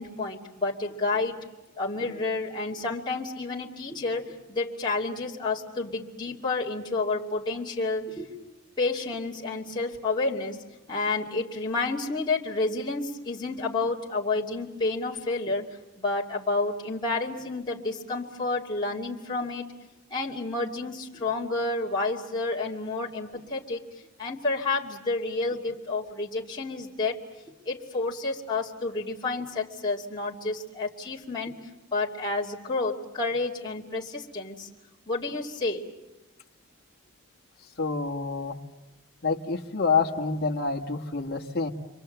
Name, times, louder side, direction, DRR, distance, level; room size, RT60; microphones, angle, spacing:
voice 1, 0.0-1.4 1.8-8.4 8.8-10.6 10.9-19.7 20.1-23.8 24.2-27.2 27.7-31.6 31.9-34.7 35.1-35.8, left 3 dB, 20° left, -5 dB, 2.5 m, -30 dB
voice 2, 37.8-38.6 39.2-41.7, left 4 dB, 45° left, 1 dB, 1.6 m, -27 dB
29.5 x 24.0 x 7.9 m, 1.0 s
head